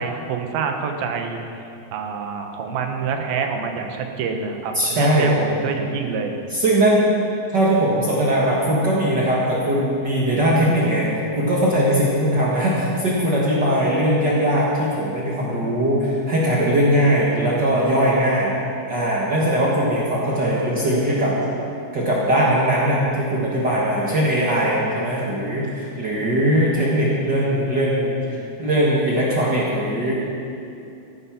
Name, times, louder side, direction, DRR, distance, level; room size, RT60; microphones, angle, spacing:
voice 1, 0.0-1.4 1.9-6.4, right 5 dB, 70° right, 4 dB, 2.7 m, -26 dB
voice 2, 4.7-5.3 6.5-7.0 7.5-11.1 11.3-18.5 18.9-21.3 21.9-28.1 28.6-30.1, right 1 dB, 90° right, -5 dB, 0.9 m, -20 dB
14.5 x 11.0 x 5.9 m, 2.7 s
omnidirectional pair, 4.9 m